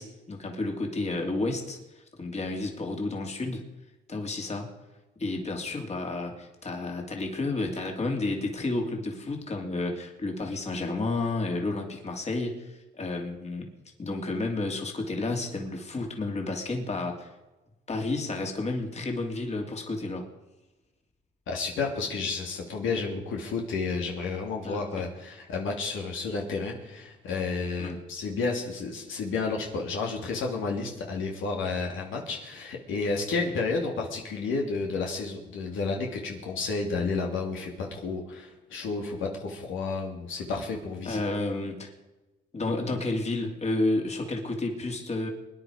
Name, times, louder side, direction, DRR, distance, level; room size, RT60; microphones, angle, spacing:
voice 1, 0.0-3.7 4.1-4.7 5.2-13.7 14.0-17.3 17.9-20.3 24.6-25.0 27.8-28.0 41.0-41.9 42.5-45.3, left 2 dB, 35° left, 2 dB, 3.0 m, -31 dB
voice 2, 21.5-41.2, left 4 dB, 80° left, 0 dB, 2.7 m, -31 dB
23.5 x 10.0 x 5.1 m, 1.1 s
cardioid pair, 90°, 20 cm